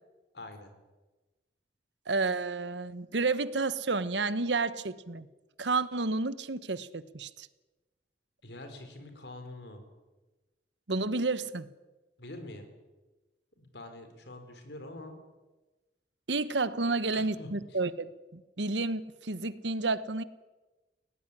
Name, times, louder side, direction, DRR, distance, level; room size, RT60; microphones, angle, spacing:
voice 1, 0.3-0.7 8.4-9.8 12.2-12.7 13.6-15.2 16.9-17.5, left 2 dB, 65° left, 7 dB, 4.5 m, -45 dB
voice 2, 2.1-5.3 5.6-7.5 10.9-11.7 16.3-20.2, right 3 dB, 80° right, 15 dB, 1.2 m, -31 dB
21.5 x 18.0 x 9.9 m, 1.2 s
head